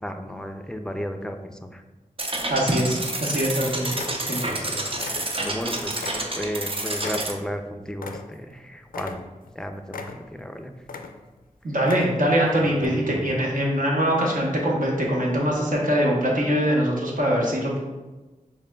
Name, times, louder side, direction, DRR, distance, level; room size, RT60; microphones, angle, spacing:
voice 1, 0.0-1.8 4.4-9.2 9.6-10.7 12.8-13.0, equal, 5° left, 6 dB, 0.4 m, -34 dB
sound 1, 2.2-7.3, right 2 dB, 40° right, 0.6 m, -29 dB
sound 2, 2.4-3.0 3.4-3.6 3.9-4.6 4.9-5.7 6.0-8.6 8.9-9.5 9.9-10.5 10.8-11.4 11.8-12.4 12.8-12.9, left 4 dB, 85° left, 0.4 m, -38 dB
voice 2, 2.5-3.9 4.2-4.4 11.6-17.8, equal, 70° right, -3 dB, 1.1 m, -23 dB
6.1 x 3.5 x 2.3 m, 1.2 s
wide cardioid pair, 50°, 14 cm